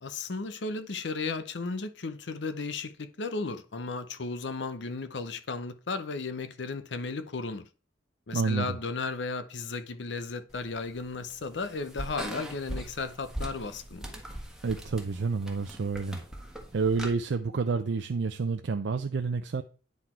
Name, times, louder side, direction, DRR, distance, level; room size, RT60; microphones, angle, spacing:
voice 1, 0.0-7.6 8.3-14.2, left 3 dB, 75° left, 0.7 m, -35 dB
voice 2, 8.3-8.8 14.6-16.2 16.7-19.6, right 4 dB, 80° right, 0.5 m, -29 dB
sound 1, 10.5-17.1, right 1 dB, 5° right, 1.4 m, -41 dB
9.6 x 4.0 x 4.4 m
head